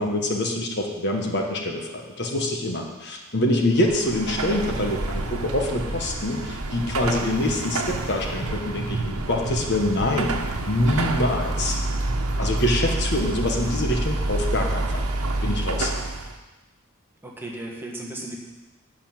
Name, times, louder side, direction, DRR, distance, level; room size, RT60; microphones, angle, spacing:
voice 1, 0.0-11.8 12.4-15.0 15.4-15.9, left 1 dB, 50° left, 2 dB, 1.4 m, -25 dB
Car passing by / Traffic noise roadway noise / Engine, 3.7-16.4, right 2 dB, 80° right, 1.1 m, -28 dB
voice 2, 17.2-18.4, right 1 dB, 10° right, -1 dB, 1.4 m, -35 dB
12.0 x 5.6 x 9.0 m, 1.2 s
head